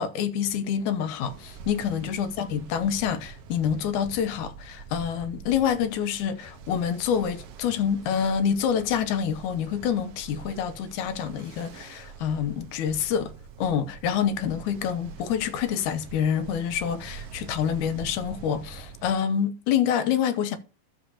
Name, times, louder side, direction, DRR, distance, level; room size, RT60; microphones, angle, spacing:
voice 1, 0.0-13.3 13.6-20.6, left 8 dB, 70° left, 2.1 m, -27 dB
Ocean, 1.2-19.1, right 6 dB, 75° right, 1.5 m, -45 dB
12.0 x 7.1 x 2.8 m
omnidirectional pair, 4.0 m